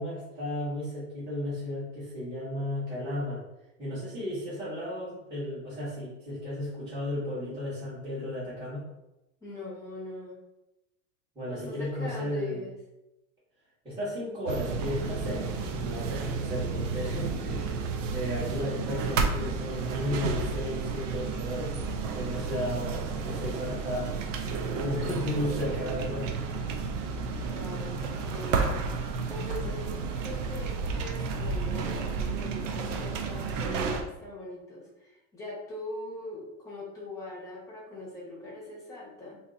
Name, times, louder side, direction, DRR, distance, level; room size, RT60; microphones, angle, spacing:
voice 1, 0.0-3.4 3.8-8.8 11.3-12.7 13.8-17.8 18.1-21.8 22.1-24.1 24.7-26.6, left 1 dB, 10° right, -12 dB, 1.2 m, -34 dB
voice 2, 9.4-10.3 11.5-12.7 22.6-23.2 24.7-25.1 27.5-28.8 29.3-29.9 30.2-39.4, left 1 dB, 10° left, -6 dB, 1.0 m, -42 dB
sound 1, 14.5-34.0, right 4 dB, 75° right, 0.7 m, -32 dB
2.9 x 2.7 x 3.7 m, 0.94 s
supercardioid pair, 160°, 39 cm